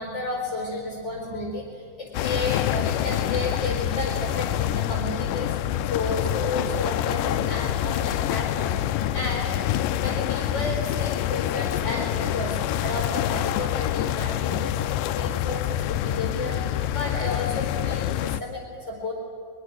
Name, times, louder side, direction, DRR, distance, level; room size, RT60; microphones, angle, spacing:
voice 1, 0.0-9.5 10.0-19.1, left 2 dB, 35° left, 0 dB, 5.2 m, -32 dB
sound 1, 2.1-18.4, left 12 dB, 85° left, 2.3 m, -26 dB
24.0 x 22.5 x 6.4 m, 2.7 s
omnidirectional pair, 3.7 m